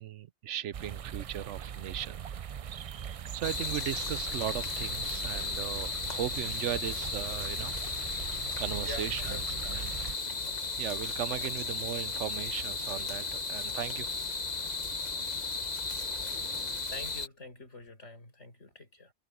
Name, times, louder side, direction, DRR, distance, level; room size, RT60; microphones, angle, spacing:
voice 1, 0.0-2.3 2.7-2.9 3.3-7.7 8.2-10.0 10.8-14.1 16.1-16.9, right 11 dB, 90° right, 1.0 m, -37 dB
sound 1, 0.7-10.2, right 8 dB, 65° right, 0.3 m, -41 dB
sound 2, 3.4-17.3, left 3 dB, 40° left, 1.4 m, -35 dB
voice 2, 8.8-9.8 10.4-10.8 16.9-19.1, left 3 dB, 90° left, 5.6 m, -46 dB
omnidirectional pair, 1.2 m